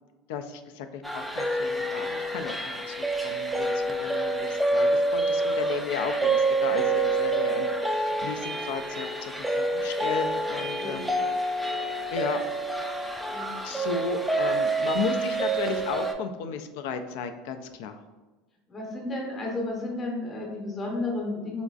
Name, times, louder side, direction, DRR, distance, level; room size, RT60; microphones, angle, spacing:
voice 1, 0.3-11.2 12.1-12.4 13.6-18.0, left 6 dB, 75° left, 8 dB, 0.3 m, -34 dB
sound 1, 1.0-16.1, right 2 dB, 5° right, 0.3 m, -27 dB
voice 2, 10.6-11.1 13.3-13.5 18.7-21.6, left 2 dB, 25° left, -1 dB, 0.7 m, -33 dB
3.9 x 2.4 x 2.3 m, 1.2 s
supercardioid pair, 125°, 0 cm